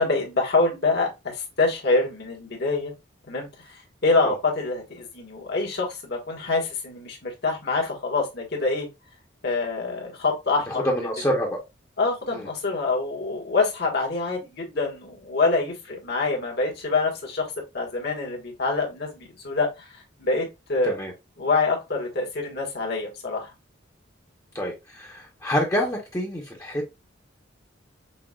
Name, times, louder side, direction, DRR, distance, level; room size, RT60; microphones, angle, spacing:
voice 1, 0.0-2.9 3.3-3.5 4.0-8.9 9.4-10.8 12.0-17.5 17.7-19.9 20.2-20.9 21.4-23.5, left 3 dB, 60° left, 1.6 m, -25 dB
voice 2, 10.7-11.6 12.3-12.5 20.8-21.1 24.5-26.9, equal, 15° left, 0.9 m, -27 dB
6.0 x 2.4 x 2.3 m
head